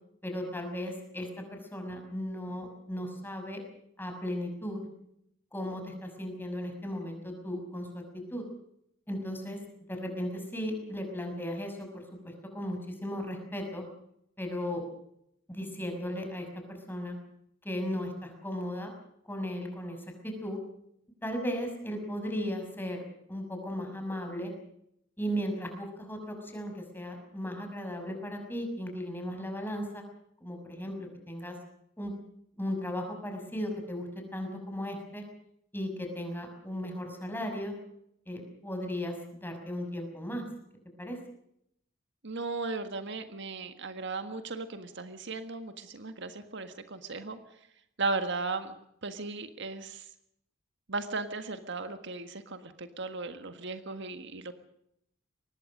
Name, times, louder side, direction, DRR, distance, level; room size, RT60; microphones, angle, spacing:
voice 1, 0.2-3.6 4.0-4.9 5.5-8.4 9.1-9.6 9.9-13.8 14.4-14.8 15.5-17.2 17.6-18.9 19.3-20.0 20.2-20.6 21.2-23.0 23.3-24.5 25.2-30.0 30.4-31.5 32.0-32.1 32.6-35.2 35.7-37.7 38.3-40.4 41.0-41.2, equal, 10° left, 4 dB, 6.1 m, -36 dB
voice 2, 42.2-47.4 48.0-48.8 49.0-50.1 50.9-54.5, right 3 dB, 60° right, 8 dB, 1.6 m, -36 dB
23.5 x 19.5 x 6.6 m, 0.75 s
head